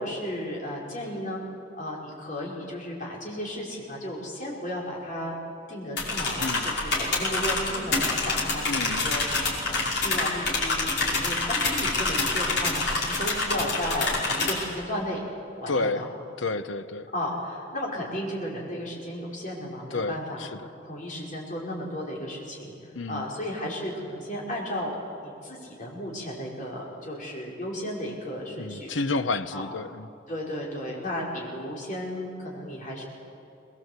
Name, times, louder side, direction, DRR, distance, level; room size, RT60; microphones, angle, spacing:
voice 1, 0.0-1.4 1.8-5.4 5.7-15.2 15.6-16.0 17.1-22.7 23.1-28.9 29.5-29.7 30.3-33.0, equal, 45° left, 5.3 m, -34 dB
sound 1, 6.0-14.5, left 3 dB, 60° left, 5.4 m, -27 dB
voice 2, 6.4-6.7 8.7-9.1 15.7-16.0 16.4-17.1 19.9-20.5 22.9-23.3 28.6-30.1, left 3 dB, 80° left, 0.9 m, -30 dB
23.0 x 20.5 x 8.2 m
head